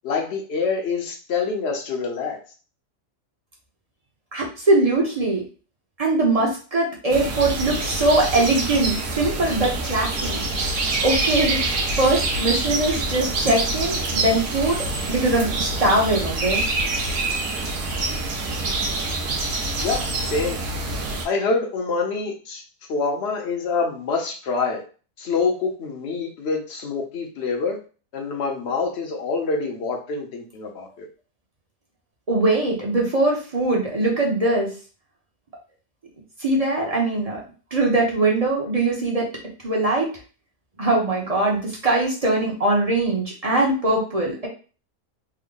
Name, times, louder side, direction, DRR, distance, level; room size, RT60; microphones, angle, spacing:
voice 1, 0.0-2.4 19.8-20.6 21.2-22.6 22.9-24.8 25.2-27.8 28.1-31.1, left 4 dB, 55° left, 2 dB, 1.0 m, -26 dB
voice 2, 4.3-5.4 6.0-10.4 11.0-11.6 11.9-16.6 32.3-34.7 36.4-37.4 37.7-39.3 39.6-40.1 40.8-44.5, right 2 dB, 35° right, -2 dB, 0.8 m, -21 dB
sound 1, 7.1-21.2, right 2 dB, 75° right, 1.2 m, -26 dB
3.5 x 2.1 x 3.7 m, 0.37 s
omnidirectional pair, 1.5 m